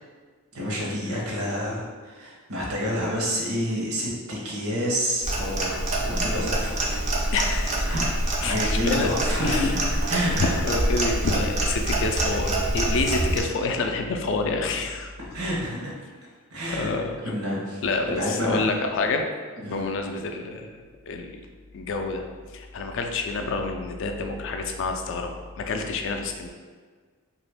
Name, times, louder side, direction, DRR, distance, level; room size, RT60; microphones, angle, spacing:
voice 1, 0.5-5.8 6.0-7.3 7.9-10.6 15.2-15.9 16.5-16.9 17.2-17.8 18.1-18.6 19.6-19.8, equal, 85° right, -3 dB, 0.8 m, -29 dB
Clock, 5.2-13.4, right 1 dB, 30° right, 0.4 m, -26 dB
voice 2, 7.3-7.8 8.4-9.8 10.3-15.1 16.7-17.2 17.8-19.3 19.7-21.5 21.7-22.2 22.5-26.5, left 3 dB, 60° left, 4 dB, 0.3 m, -28 dB
2.8 x 2.4 x 3.4 m, 1.5 s
head